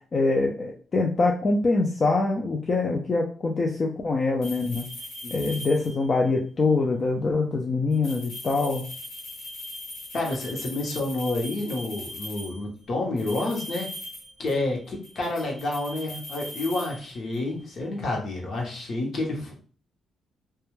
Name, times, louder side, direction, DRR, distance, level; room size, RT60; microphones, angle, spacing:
voice 1, 0.1-4.9 5.3-8.9, left 3 dB, 35° left, 0 dB, 0.3 m, -24 dB
sound 1, 4.4-6.2 7.9-12.6 13.2-14.7 15.0-17.5, left 1 dB, 75° left, 1.1 m, -40 dB
voice 2, 10.1-13.9 14.4-19.5, left 2 dB, 55° left, 0 dB, 0.8 m, -29 dB
2.2 x 2.1 x 3.0 m, 0.42 s
cardioid pair, 125°, 0 cm